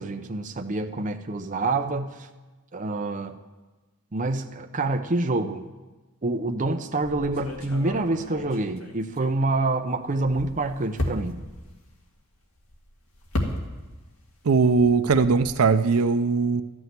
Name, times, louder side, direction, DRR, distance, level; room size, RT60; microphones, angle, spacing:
voice 1, 0.0-2.1 2.7-3.3 4.1-5.6 6.2-11.4, right 2 dB, 35° right, 6 dB, 0.6 m, -27 dB
sound 1, 7.0-9.7 10.1-14.1 14.4-15.7, left 1 dB, 75° left, 1.9 m, -34 dB
voice 2, 14.5-16.6, right 4 dB, 80° right, 10 dB, 0.5 m, -20 dB
13.0 x 6.2 x 9.4 m, 1.2 s
head